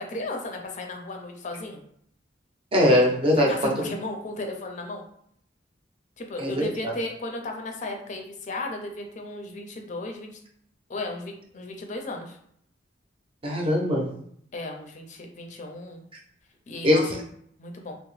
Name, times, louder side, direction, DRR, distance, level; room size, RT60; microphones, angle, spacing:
voice 1, 0.0-1.8 3.3-5.0 6.2-10.4 10.9-12.4 14.5-16.0 16.7-17.2 17.6-18.0, left 2 dB, 40° left, 3 dB, 0.5 m, -35 dB
voice 2, 2.7-3.7 6.4-6.9 13.4-14.0 16.8-17.0, left 1 dB, 30° right, -1 dB, 0.6 m, -21 dB
2.8 x 2.0 x 3.1 m, 0.67 s
head